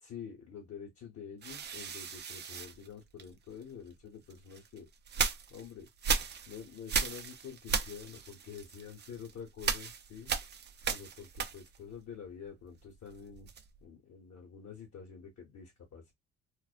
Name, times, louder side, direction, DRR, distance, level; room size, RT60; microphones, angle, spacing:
voice 1, 0.0-4.9 5.5-5.9 6.5-10.3 10.8-13.5 13.8-16.1, left 7 dB, 60° left, 1.1 m, -48 dB
sound 1, 1.4-3.6 4.3-11.9 12.2-13.9, right 6 dB, 35° right, 0.4 m, -36 dB
2.4 x 2.1 x 2.4 m
cardioid pair, 90°, 30 cm